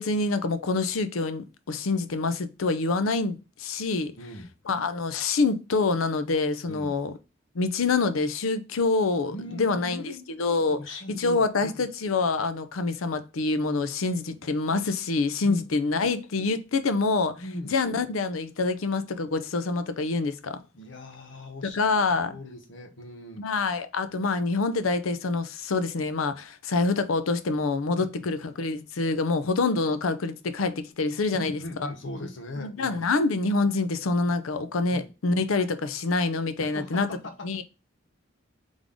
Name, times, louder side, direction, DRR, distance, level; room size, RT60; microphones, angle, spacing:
voice 1, 0.0-4.1 4.7-7.1 7.5-10.1 10.4-10.8 11.1-17.3 17.7-20.6 21.7-22.4 23.4-31.6 32.6-37.1 37.4-37.6, left 3 dB, 85° left, 0.5 m, -26 dB
voice 2, 4.2-4.5 6.7-7.0 9.3-10.3 10.7-11.9 15.4-15.7 17.4-17.8 20.7-21.8 22.3-23.4 27.9-28.3 29.4-29.5 31.3-33.1 34.9-35.1 36.6-37.6, left 1 dB, 60° left, 0.9 m, -39 dB
3.6 x 3.5 x 3.6 m
head